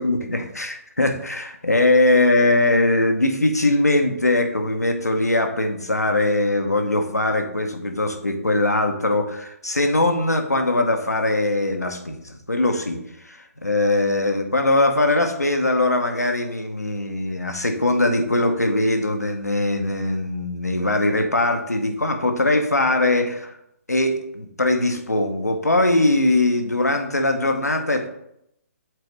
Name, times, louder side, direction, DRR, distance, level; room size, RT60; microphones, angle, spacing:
voice 1, 0.0-13.0 13.2-23.5 23.9-28.1, left 2 dB, 85° left, 5 dB, 0.9 m, -21 dB
7.7 x 4.0 x 3.2 m, 0.78 s
figure-of-eight pair, 130°, 8 cm